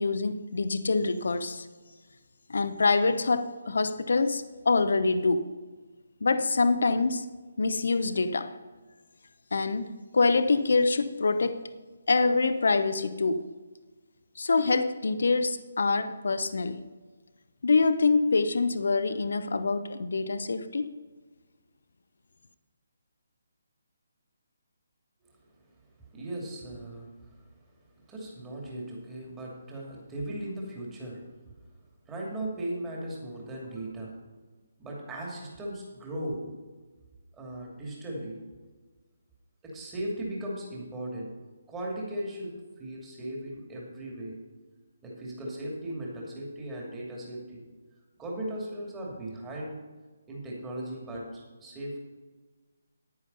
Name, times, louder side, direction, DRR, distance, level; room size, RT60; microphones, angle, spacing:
voice 1, 0.0-1.7 2.5-5.5 6.2-7.3 7.6-8.5 9.5-11.6 12.1-13.4 14.4-16.8 17.6-20.9, left 3 dB, 60° left, 0.8 m, -25 dB
voice 2, 26.1-27.4 28.1-31.5 32.0-34.2 34.8-36.5 37.4-38.4 39.6-41.3 41.7-44.3 45.0-47.6 48.2-49.8 50.3-52.0, right 1 dB, 10° right, 2.6 m, -37 dB
10.0 x 9.6 x 5.4 m
figure-of-eight pair, 140°, 0 cm